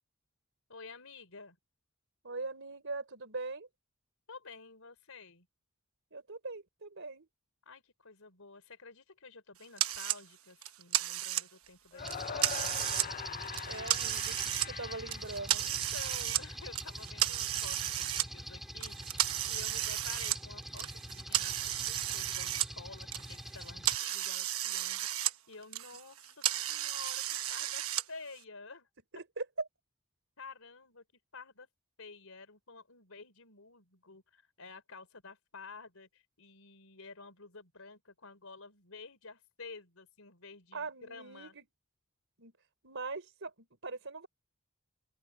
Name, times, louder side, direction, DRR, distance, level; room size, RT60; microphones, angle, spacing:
voice 1, 0.7-1.6 4.3-5.5 7.6-12.7 15.6-28.9 30.4-31.0 31.3-31.7 32.0-41.6, left 4 dB, 75° left, 4.5 m, -51 dB
voice 2, 2.2-3.7 6.1-7.3 13.7-15.6 29.1-29.4 40.7-41.6 42.4-42.5 42.8-44.3, right 3 dB, 65° right, 4.4 m, -42 dB
sound 1, 9.8-10.2 10.6-11.7 12.1-13.1 13.4-14.7 15.1-16.4 16.8-18.3 18.8-22.7 23.0-25.3 25.6-28.0, right 13 dB, 80° right, 1.1 m, -33 dB
sound 2, 11.9-16.1, left 7 dB, 40° left, 0.5 m, -42 dB
sound 3, 12.0-24.0, equal, ahead, 1.8 m, -45 dB
open air
head